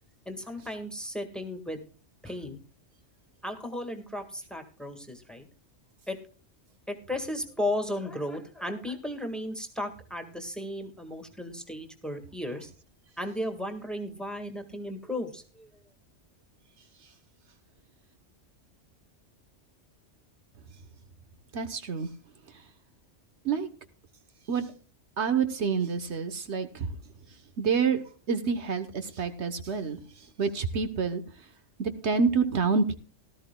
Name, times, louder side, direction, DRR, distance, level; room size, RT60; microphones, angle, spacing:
voice 1, 0.2-1.8 2.2-2.6 3.4-5.5 6.1-6.2 6.9-12.7 13.2-15.7, left 1 dB, ahead, 5 dB, 1.6 m, -35 dB
voice 2, 21.5-22.1 23.4-23.7 24.5-24.7 25.2-26.9 27.6-30.0 30.4-31.2 31.8-32.9, right 5 dB, 70° right, 8 dB, 1.3 m, -27 dB
18.0 x 13.0 x 2.2 m, 0.37 s
omnidirectional pair, 1.2 m